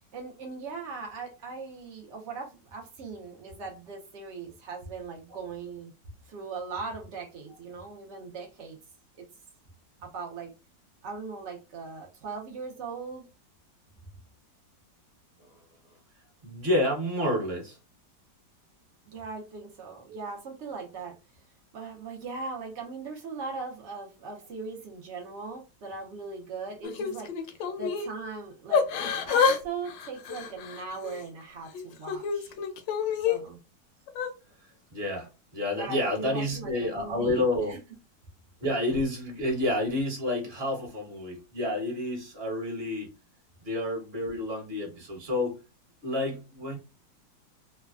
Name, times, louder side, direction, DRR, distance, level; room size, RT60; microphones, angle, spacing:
voice 1, 0.1-5.9 6.3-8.8 9.2-9.3 10.0-10.5 11.0-13.3 19.1-21.2 21.7-32.5 33.2-33.6 35.7-37.8, right 4 dB, 80° right, 0 dB, 0.6 m, -39 dB
voice 2, 16.4-17.8 20.1-20.2 34.9-37.8 38.6-43.1 43.6-45.6 46.0-46.8, left 1 dB, 40° right, 0 dB, 1.1 m, -29 dB
Yell / Crying sobbing, 26.8-28.1 28.7-29.6 29.9-31.2 31.7-33.4 34.1-34.3, left 6 dB, 85° left, 1.3 m, -28 dB
3.1 x 2.1 x 2.4 m, 0.29 s
omnidirectional pair, 2.0 m